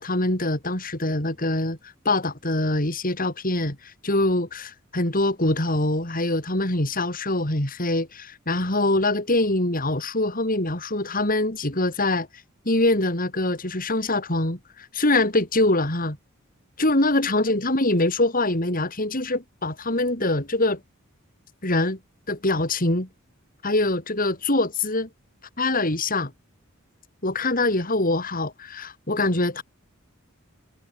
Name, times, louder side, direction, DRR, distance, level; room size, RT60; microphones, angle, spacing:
voice 1, 0.0-1.8 2.0-3.8 4.0-12.3 12.6-16.2 16.8-20.8 21.6-22.0 22.3-23.1 23.6-25.1 25.6-26.3 27.2-29.6, left 2 dB, 40° left, 5.0 m, -24 dB
head